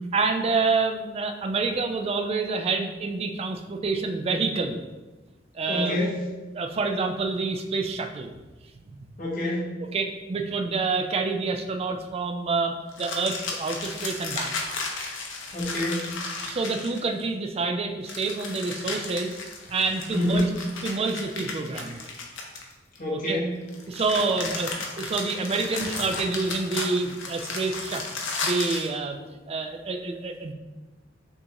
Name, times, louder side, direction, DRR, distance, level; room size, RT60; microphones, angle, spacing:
voice 1, 0.1-4.8 5.5-6.0 6.5-8.3 9.0-9.1 9.8-14.5 16.5-19.4 19.7-20.5 20.8-22.0 23.1-23.4 23.9-28.0 28.4-29.2 29.5-30.5, right 4 dB, 30° right, 6 dB, 0.4 m, -27 dB
voice 2, 5.7-6.2 9.2-9.7 15.5-16.1 20.1-20.4 23.0-23.6, left 1 dB, 45° left, -5 dB, 1.3 m, -27 dB
sound 1, 12.9-17.2 18.0-23.0 23.7-28.9, left 3 dB, 80° left, 0.7 m, -34 dB
6.1 x 2.5 x 2.9 m, 1.2 s
head